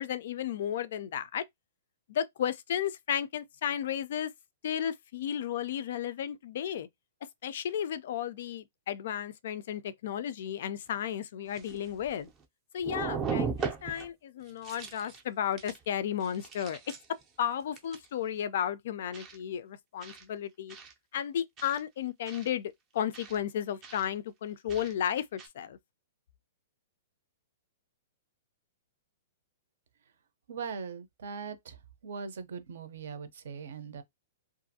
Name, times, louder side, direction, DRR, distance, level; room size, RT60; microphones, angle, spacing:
voice 1, 0.0-1.4 2.1-4.3 4.6-6.9 7.4-12.3 12.7-16.8 17.4-20.8 21.1-25.8, left 9 dB, 50° left, 0.3 m, -33 dB
sound 1, 10.9-11.0 11.5-12.4 12.8-14.1 14.5-15.2 15.6-15.8 16.2-17.2 17.8-18.1 19.1-19.4 20.0-20.2 20.7-20.9 21.6-21.8 22.3-22.5 23.1-23.4 23.8-24.1 24.7-24.9 25.4-25.5, right 5 dB, 15° right, 0.4 m, -37 dB
voice 2, 30.5-31.8 32.0-34.0, right 5 dB, 65° right, 0.6 m, -40 dB
2.5 x 2.4 x 2.7 m
hypercardioid pair, 175°, 0 cm